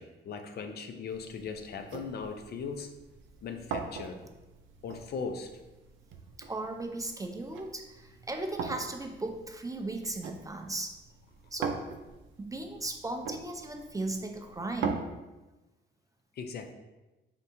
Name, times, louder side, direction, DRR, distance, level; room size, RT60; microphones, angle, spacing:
voice 1, 0.0-2.9 3.4-4.2 4.8-5.5 16.4-16.7, left 5 dB, 55° left, 6 dB, 0.5 m, -38 dB
sound 1, 1.1-14.9, right 6 dB, 80° right, 0.5 m, -42 dB
voice 2, 6.4-11.0 11.5-11.8 12.4-15.1, right 2 dB, 15° right, 4 dB, 0.4 m, -36 dB
4.0 x 3.5 x 2.7 m, 1.1 s
cardioid pair, 90°, 20 cm